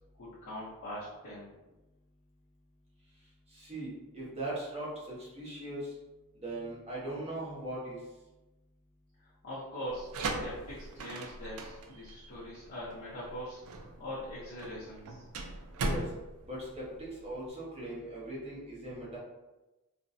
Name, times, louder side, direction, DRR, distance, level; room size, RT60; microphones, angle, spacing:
voice 1, 0.2-1.5 9.2-13.6 14.0-15.2, equal, 60° left, -10 dB, 0.7 m, -42 dB
voice 2, 3.5-5.9 6.4-8.0 15.8-16.1 16.5-19.2, right 1 dB, 30° right, -6 dB, 0.8 m, -39 dB
sound 1, 9.9-17.5, right 2 dB, 70° right, 0.4 m, -39 dB
2.5 x 2.1 x 2.5 m, 1.1 s
head